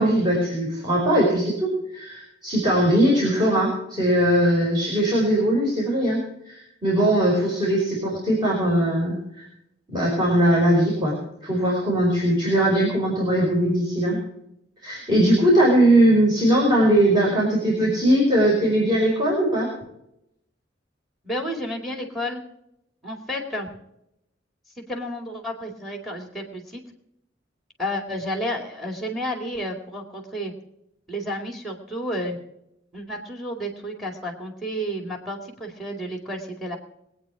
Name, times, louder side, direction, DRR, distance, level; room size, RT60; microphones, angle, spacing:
voice 1, 0.0-9.5 9.9-11.2 11.4-14.2 14.8-19.7, right 1 dB, 25° right, -5 dB, 5.2 m, -20 dB
voice 2, 21.2-22.4 23.0-23.7 24.8-26.8 27.8-30.5 31.1-32.4 32.9-36.8, equal, ahead, 4 dB, 2.4 m, -31 dB
22.5 x 8.8 x 4.9 m, 0.80 s
head